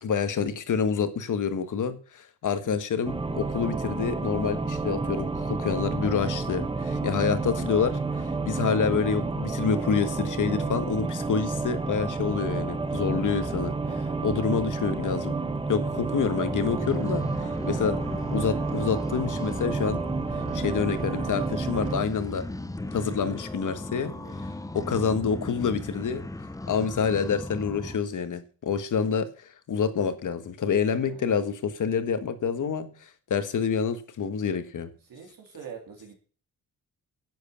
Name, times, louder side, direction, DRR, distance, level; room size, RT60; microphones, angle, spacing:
voice 1, 0.0-13.7 14.2-15.4 15.7-18.0 18.3-20.0 20.3-22.4 22.9-24.1 24.7-26.3 26.7-34.9, left 6 dB, 55° left, 1.6 m, -27 dB
voice 2, 2.5-2.8 13.4-14.3 17.6-18.0 24.0-24.4 30.7-31.3 35.0-36.2, right 6 dB, 70° right, 3.2 m, -46 dB
sound 1, 3.0-22.0, right 3 dB, 15° right, 1.0 m, -30 dB
sound 2, 16.5-28.0, left 2 dB, 10° left, 0.7 m, -37 dB
10.5 x 8.0 x 7.0 m
wide cardioid pair, 160°, 36 cm